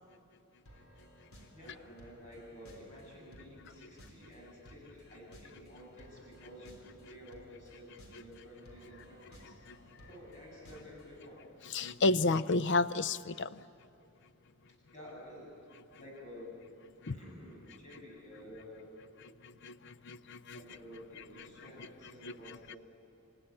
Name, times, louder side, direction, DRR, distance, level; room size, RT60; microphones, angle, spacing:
sound 1, 0.7-11.3, equal, 70° left, 4.0 m, -58 dB
voice 1, 1.5-9.6 10.1-11.5 14.0-14.1 14.9-16.6 17.0-19.0 20.5-22.8, equal, 30° left, -2 dB, 7.6 m, -51 dB
voice 2, 11.7-13.6 17.0-17.2 19.4-20.6 22.2-22.3 22.7-22.8, left 3 dB, 50° left, 15 dB, 0.6 m, -31 dB
28.5 x 16.0 x 9.9 m, 2.5 s
head